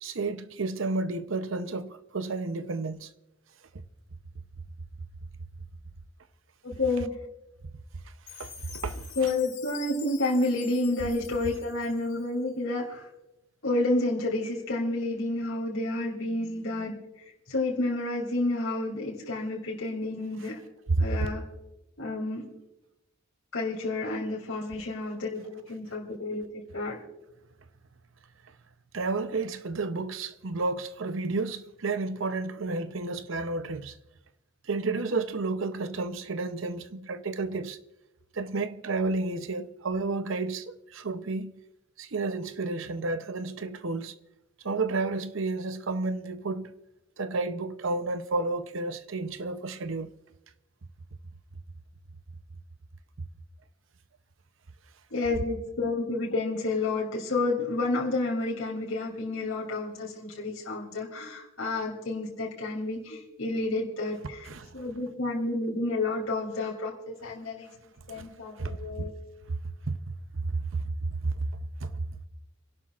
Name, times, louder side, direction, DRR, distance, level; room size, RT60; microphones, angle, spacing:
voice 1, 0.0-3.1 8.4-9.3 21.0-21.3 28.9-33.9 34.7-37.8 38.3-41.5 42.0-44.1 44.6-46.8 47.2-50.1 64.5-64.7 68.1-68.2 68.6-68.8 69.5-69.6 69.8-70.0 70.3-71.5 71.8-72.0, right 3 dB, 65° right, 0.7 m, -31 dB
voice 2, 6.6-7.1 9.1-13.1 13.6-16.9 17.5-20.6 21.0-21.4 22.0-22.4 23.5-26.4 26.7-27.0 55.1-64.5 64.7-67.7 68.1-69.1, left 2 dB, 85° left, 3.1 m, -30 dB
Chime, 8.3-12.5, left 9 dB, 55° left, 3.9 m, -46 dB
30.0 x 11.5 x 2.5 m
head